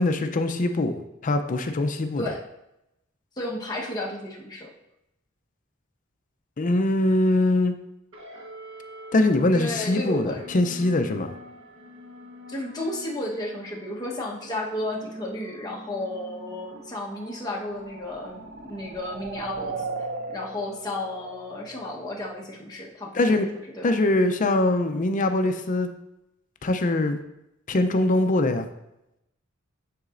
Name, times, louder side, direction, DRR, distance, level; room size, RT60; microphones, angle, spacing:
voice 1, 0.0-2.2 6.6-7.7 9.1-11.3 23.1-23.5 23.8-25.9 26.6-27.2 27.7-28.7, left 2 dB, 40° left, 7 dB, 0.5 m, -22 dB
voice 2, 3.4-4.7 9.5-10.4 12.5-19.8 20.3-23.5 23.7-23.9, left 1 dB, 20° left, -3 dB, 1.0 m, -33 dB
sound 1, 8.1-22.9, equal, 70° right, 1.2 m, -46 dB
sound 2, 16.6-22.4, right 4 dB, 45° right, 0.4 m, -38 dB
9.6 x 4.0 x 2.5 m, 0.87 s
head